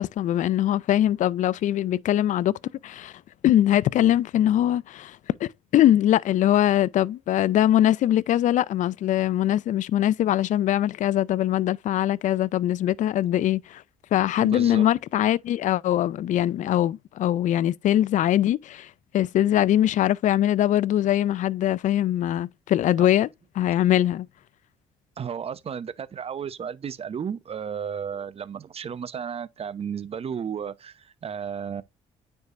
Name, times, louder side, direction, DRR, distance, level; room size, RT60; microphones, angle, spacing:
voice 1, 0.0-2.5 2.8-3.1 3.4-13.8 14.1-23.3 23.5-24.3, left 12 dB, 55° left, 0.4 m, -22 dB
voice 2, 14.4-14.9 23.0-23.1 25.2-31.8, right 7 dB, 40° right, 0.8 m, -33 dB
9.4 x 4.6 x 2.5 m
hypercardioid pair, 60°, 15 cm